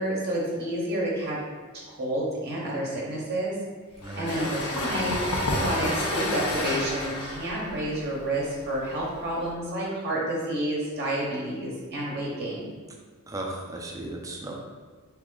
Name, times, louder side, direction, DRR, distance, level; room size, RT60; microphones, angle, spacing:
voice 1, 0.0-1.4 1.9-3.6 4.2-5.2 5.5-12.7, right 1 dB, 50° right, -4 dB, 0.8 m, -29 dB
sound 1, 4.0-9.5, left 1 dB, 85° left, 0.7 m, -30 dB
voice 2, 4.0-4.4 13.3-14.6, right 1 dB, 15° right, 0 dB, 0.5 m, -35 dB
3.5 x 2.9 x 3.7 m, 1.5 s
head